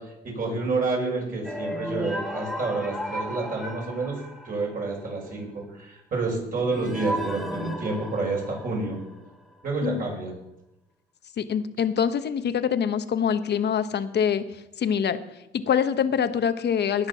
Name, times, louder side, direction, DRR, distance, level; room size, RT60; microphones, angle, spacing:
voice 1, 0.0-4.2 4.4-9.0 9.6-10.3, right 3 dB, 45° right, -2 dB, 6.1 m, -29 dB
sound 1, 1.4-5.1 6.7-9.3, equal, ahead, 1.8 m, -34 dB
voice 2, 11.4-14.4 14.8-15.2 15.5-17.1, left 8 dB, 60° left, 11 dB, 1.1 m, -24 dB
19.0 x 6.7 x 5.8 m, 0.92 s
cardioid pair, 90°, 20 cm